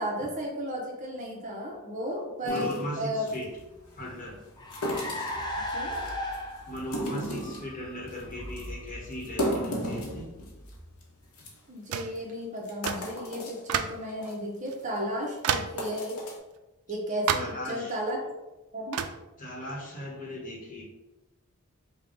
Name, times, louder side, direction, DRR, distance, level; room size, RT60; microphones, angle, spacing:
voice 1, 0.0-2.7 3.0-3.3 5.7-6.0 11.7-16.2 16.9-18.3 18.7-19.0, equal, 35° right, -1 dB, 0.8 m, -34 dB
sound 1, 2.4-3.4 4.7-5.4 5.9-6.4 6.8-7.7 8.1-8.2 8.6-8.7 9.1-10.7 11.0-11.1 11.4-11.5 12.1-12.2 12.6-13.6 14.1-14.3 14.8-15.0 15.6-16.4, equal, 85° left, 1.0 m, -33 dB
voice 2, 2.4-3.5 4.0-4.4 6.7-10.2 17.3-18.0 19.4-20.8, left 1 dB, 40° left, -2 dB, 1.1 m, -38 dB
Car, 3.5-11.3, left 1 dB, 20° left, 0.5 m, -39 dB
sound 2, 11.9-12.2 12.9-13.1 13.7-14.1 14.7-14.8 15.4-15.8 17.3-17.6 18.9-19.2, right 8 dB, 75° right, 0.3 m, -29 dB
5.2 x 2.3 x 3.8 m, 1.0 s
head